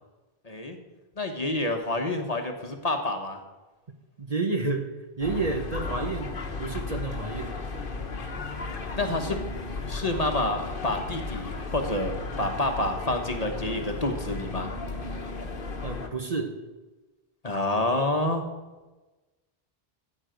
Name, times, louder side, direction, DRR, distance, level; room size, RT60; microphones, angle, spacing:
voice 1, 0.4-0.8 1.2-3.4 9.0-9.4 9.8-14.7 15.1-15.2 17.4-18.4, left 2 dB, 40° left, 4 dB, 1.3 m, -28 dB
voice 2, 4.2-4.9 5.2-6.3 6.6-7.5 15.8-16.6, right 3 dB, 40° right, 5 dB, 1.0 m, -30 dB
sound 1, 5.2-16.1, left 3 dB, 60° left, 1.4 m, -35 dB
14.0 x 8.8 x 5.2 m, 1.2 s
omnidirectional pair, 1.0 m